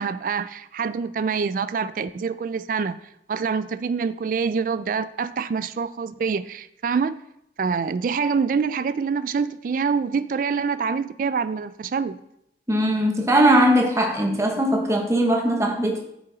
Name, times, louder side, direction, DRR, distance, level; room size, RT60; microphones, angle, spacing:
voice 1, 0.0-3.0 3.3-7.2 7.6-12.2, right 5 dB, 50° right, 0.3 m, -25 dB
voice 2, 12.7-16.0, right 1 dB, 15° right, 1.0 m, -20 dB
9.0 x 5.8 x 3.9 m
head